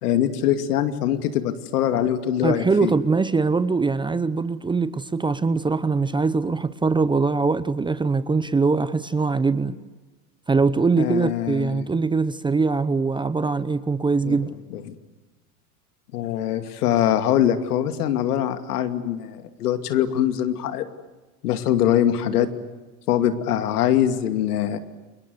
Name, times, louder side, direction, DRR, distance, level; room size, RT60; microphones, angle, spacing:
voice 1, 0.0-2.9 11.0-11.9 14.2-14.4 14.7-15.0 16.1-20.8 21.4-22.5 23.1-24.8, left 11 dB, 75° left, 2.6 m, -23 dB
voice 2, 2.4-9.8 10.5-14.5, right 4 dB, 10° right, 0.8 m, -22 dB
29.5 x 22.0 x 8.0 m
hypercardioid pair, 110°, 46 cm